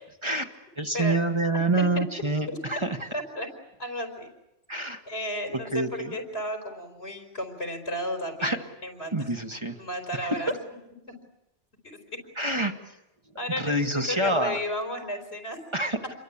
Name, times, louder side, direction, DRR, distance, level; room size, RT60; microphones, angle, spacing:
voice 1, 0.8-3.1 4.7-5.0 5.5-6.1 8.4-8.6 9.1-9.8 10.2-10.6 12.4-12.7 13.6-14.6 15.7-16.0, right 2 dB, 30° right, 5 dB, 1.4 m, -27 dB
voice 2, 1.8-2.1 2.5-2.6 3.1-3.5 3.8-4.3 5.1-9.1 9.8-10.5 13.4-15.6, equal, 85° left, 4 dB, 4.6 m, -33 dB
28.0 x 22.5 x 8.7 m, 0.90 s
omnidirectional pair, 1.1 m